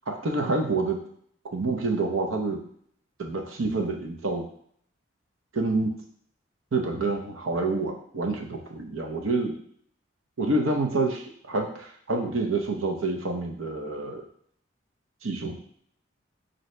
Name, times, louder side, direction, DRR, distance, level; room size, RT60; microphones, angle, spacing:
voice 1, 0.1-1.0 1.5-2.6 3.2-4.4 5.5-5.9 6.7-9.6 10.4-14.2 15.2-15.6, right 3 dB, 85° right, 2 dB, 0.7 m, -27 dB
3.9 x 2.8 x 3.2 m, 0.63 s
head